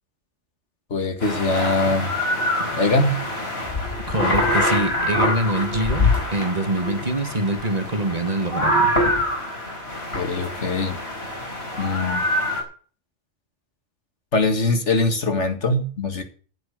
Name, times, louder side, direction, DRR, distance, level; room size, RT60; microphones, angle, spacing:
voice 1, 0.9-2.1 2.7-3.2 10.1-11.0 11.8-12.2 14.3-16.2, left 2 dB, 80° left, 6 dB, 2.4 m, -22 dB
sound 1, 1.2-12.6, left 1 dB, 60° left, 5.0 m, -25 dB
voice 2, 4.1-8.9, right 2 dB, 35° right, 7 dB, 1.7 m, -25 dB
15.0 x 7.7 x 6.6 m, 0.42 s
omnidirectional pair, 1.2 m